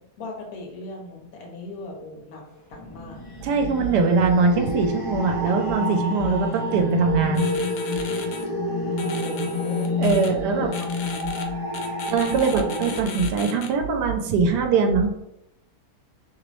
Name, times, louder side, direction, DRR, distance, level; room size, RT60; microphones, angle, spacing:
voice 1, 0.0-2.4 2.7-3.2 9.1-9.9 10.5-11.4, left 1 dB, 65° left, 0 dB, 1.2 m, -38 dB
sound 1, 2.8-13.0, left 2 dB, 45° left, 0.4 m, -28 dB
voice 2, 3.4-7.5 10.0-10.7 12.1-15.2, right 4 dB, 90° right, 4 dB, 1.2 m, -22 dB
sound 2, 7.3-8.4 9.0-10.3 10.7-11.4 11.7-13.7, left 5 dB, 80° left, 1.1 m, -36 dB
3.0 x 2.9 x 3.0 m, 0.82 s
omnidirectional pair, 1.7 m